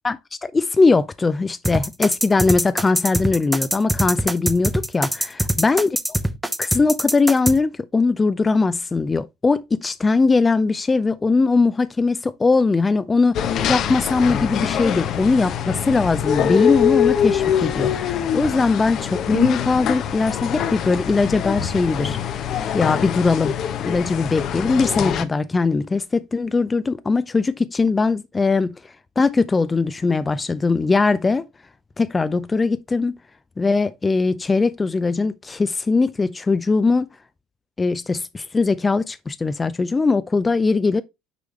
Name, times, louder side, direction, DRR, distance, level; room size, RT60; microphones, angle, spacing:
voice 1, 0.0-5.9 6.6-22.2 22.7-23.6 23.8-28.7 29.2-31.4 32.0-33.2 33.6-37.1 37.8-41.0, left 3 dB, 20° left, 0.4 m, -20 dB
sound 1, 1.6-7.5, right 1 dB, 5° right, 0.9 m, -22 dB
sound 2, 13.3-25.2, left 9 dB, 50° left, 0.8 m, -23 dB
6.8 x 4.8 x 3.1 m
hypercardioid pair, 70°, 0 cm